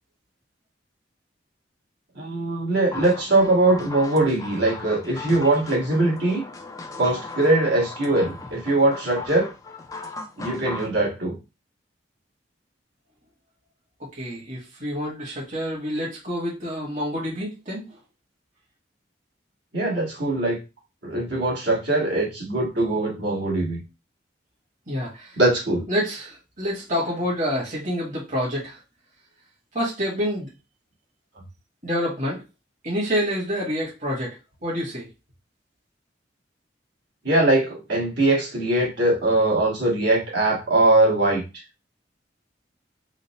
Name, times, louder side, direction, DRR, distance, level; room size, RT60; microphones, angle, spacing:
voice 1, 2.2-6.4 7.0-9.5 10.4-11.3 19.7-20.6 21.0-23.8 25.4-25.9 37.2-41.4, right 2 dB, 70° right, -3 dB, 1.6 m, -21 dB
sound 1, 2.9-10.9, left 3 dB, 20° left, 0.4 m, -38 dB
voice 2, 14.1-17.8 24.9-25.4 25.9-28.8 29.7-30.5 31.8-32.4 32.8-34.4 34.6-35.1, equal, 45° right, -4 dB, 1.4 m, -27 dB
3.9 x 2.1 x 4.1 m, 0.27 s
head